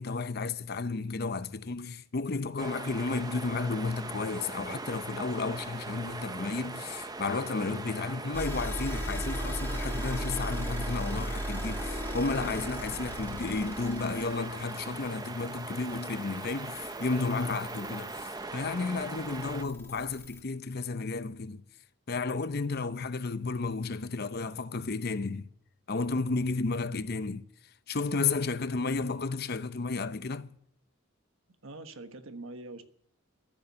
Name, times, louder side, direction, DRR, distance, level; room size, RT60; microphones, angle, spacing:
voice 1, 0.0-21.6 22.1-25.5 25.9-27.4 27.9-30.5, left 4 dB, 45° left, 0.6 m, -32 dB
sound 1, 2.6-19.6, right 3 dB, 15° right, 0.7 m, -40 dB
sound 2, 8.3-20.4, equal, 10° left, 1.8 m, -38 dB
voice 2, 31.6-32.8, right 2 dB, 70° right, 1.4 m, -43 dB
14.0 x 7.1 x 9.4 m
head